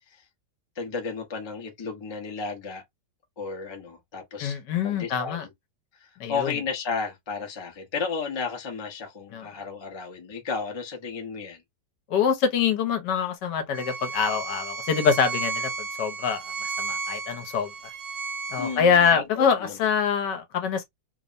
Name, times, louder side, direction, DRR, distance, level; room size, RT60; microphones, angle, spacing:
voice 1, 0.8-2.8 3.4-4.6 4.8-5.5 6.0-11.6 18.6-19.8, left 5 dB, 35° left, 0.4 m, -33 dB
voice 2, 4.4-5.4 6.2-6.5 9.3-9.5 12.1-17.7 18.5-20.8, left 6 dB, 75° left, 1.3 m, -25 dB
Bowed string instrument, 13.7-19.2, right 4 dB, 75° right, 1.4 m, -33 dB
3.3 x 2.0 x 2.4 m
omnidirectional pair, 1.9 m